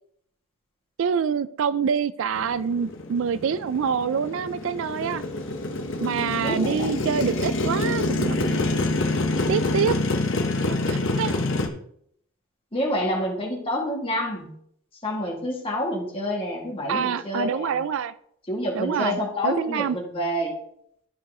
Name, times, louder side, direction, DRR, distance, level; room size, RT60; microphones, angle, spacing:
voice 1, 1.0-5.2 6.0-8.7 9.5-10.0 10.7-11.3 16.9-18.1 18.7-20.0, right 7 dB, 60° right, 16 dB, 0.3 m, -26 dB
Motorcycle, 2.3-11.7, left 2 dB, 60° left, 1.0 m, -26 dB
voice 2, 6.4-6.9 12.7-14.5 15.0-17.8 18.5-20.6, left 1 dB, 25° left, -3 dB, 2.1 m, -28 dB
12.0 x 4.6 x 3.8 m, 0.68 s
head